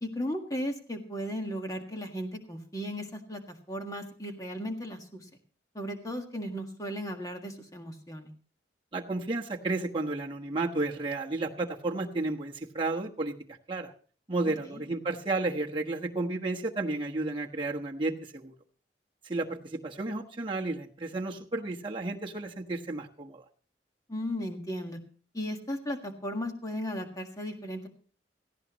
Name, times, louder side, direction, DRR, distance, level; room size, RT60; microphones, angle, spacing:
voice 1, 0.0-3.4 3.7-5.2 5.7-8.3 14.7-14.8 24.1-25.0 25.3-27.9, equal, 20° left, 4 dB, 1.7 m, -36 dB
voice 2, 8.9-13.3 13.7-13.9 14.3-18.5 19.2-23.4, right 2 dB, 30° right, -1 dB, 1.2 m, -32 dB
17.5 x 15.0 x 3.0 m, 0.42 s
head